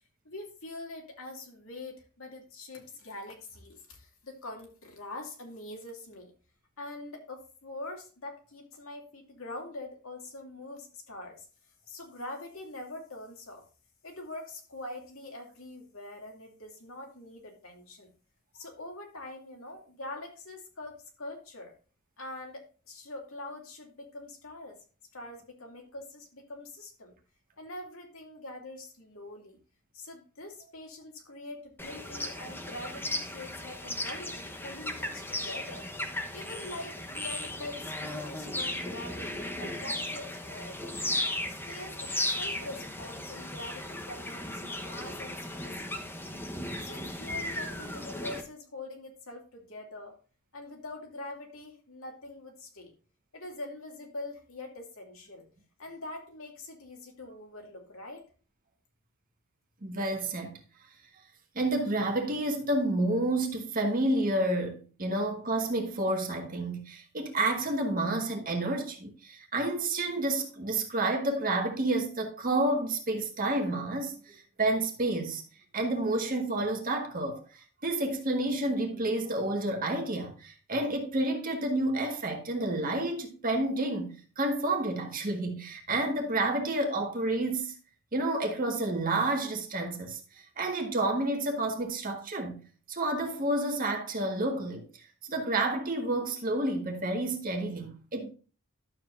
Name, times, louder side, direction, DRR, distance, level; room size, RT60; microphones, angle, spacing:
voice 1, 0.2-6.3 6.8-11.5 11.9-13.6 14.0-18.1 18.5-21.7 22.2-24.8 25.1-27.1 27.6-29.6 29.9-35.9 36.3-40.9 41.5-46.3 46.8-50.2 50.5-52.9 53.3-55.5 55.8-58.3, left 2 dB, 70° left, 2.6 m, -44 dB
sound 1, 31.8-48.4, left 1 dB, 10° left, 1.0 m, -36 dB
voice 2, 59.8-60.5 61.5-75.4 75.7-87.7 88.1-92.6 92.9-94.8 95.2-98.3, right 2 dB, 40° right, 1.7 m, -30 dB
11.5 x 7.5 x 2.6 m
head